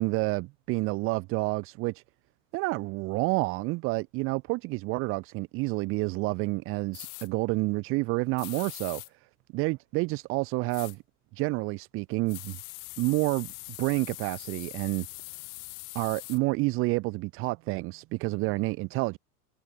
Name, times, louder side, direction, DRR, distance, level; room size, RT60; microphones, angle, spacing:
voice 1, 0.0-2.0 2.5-9.0 9.5-11.0 11.3-12.6 13.0-13.5 13.8-15.1 15.9-19.2, right 24 dB, 30° right, 0.5 m, -29 dB
sound 1, 6.9-7.3 8.4-9.1 10.7-11.0 12.3-16.4, left 33 dB, 40° left, 0.6 m, -42 dB
hypercardioid pair, 100°, 46 cm